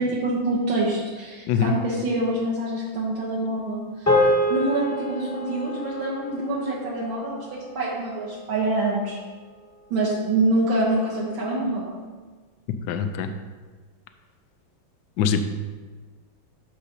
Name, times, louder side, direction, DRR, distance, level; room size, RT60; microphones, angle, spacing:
voice 1, 0.0-4.1 4.5-9.2 9.9-11.9, right 2 dB, 80° right, -5 dB, 1.9 m, -26 dB
sound 1, 4.1-8.6, left 1 dB, 10° left, 1.2 m, -26 dB
voice 2, 12.9-13.3 15.2-15.5, left 7 dB, 75° left, 8 dB, 1.1 m, -22 dB
12.0 x 5.2 x 2.8 m, 1.4 s
omnidirectional pair, 2.1 m